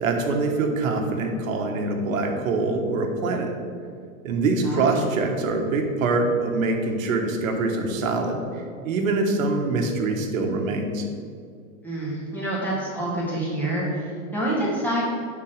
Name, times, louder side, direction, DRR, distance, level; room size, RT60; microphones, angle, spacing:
voice 1, 0.0-3.5 4.2-8.4 8.8-11.0, right 3 dB, 75° right, 3 dB, 1.3 m, -24 dB
voice 2, 4.6-5.0 11.8-15.0, right 1 dB, 5° left, -7 dB, 2.0 m, -27 dB
5.8 x 4.6 x 6.5 m, 2.2 s
supercardioid pair, 145°, 40 cm